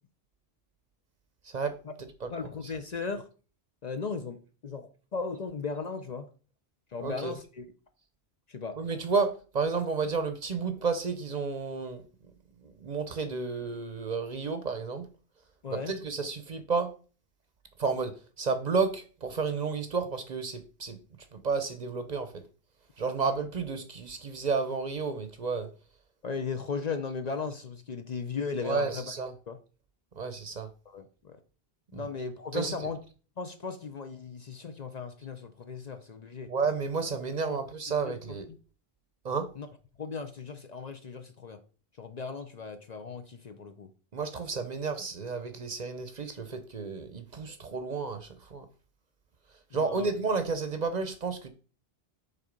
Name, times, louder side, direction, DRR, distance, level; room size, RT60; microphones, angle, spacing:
voice 1, 1.4-1.7 2.2-2.3 7.0-7.3 8.8-12.0 12.6-15.1 15.7-16.9 17.8-21.0 21.3-22.4 23.0-25.7 28.6-29.3 30.2-30.7 31.9-32.1 32.5-32.9 36.5-38.5 39.2-39.5 44.1-48.7 49.7-51.5, right 4 dB, 45° right, 0.7 m, -31 dB
voice 2, 2.3-3.3 3.8-6.3 6.9-7.7 8.5-8.8 15.6-15.9 26.2-29.1 29.5-29.6 30.9-31.4 31.9-33.0 33.4-36.5 37.5-37.6 38.1-38.2 39.6-39.7 40.0-41.6 42.0-43.9 49.7-50.1, left 4 dB, 50° left, 0.6 m, -36 dB
6.7 x 3.7 x 5.0 m
omnidirectional pair, 1.1 m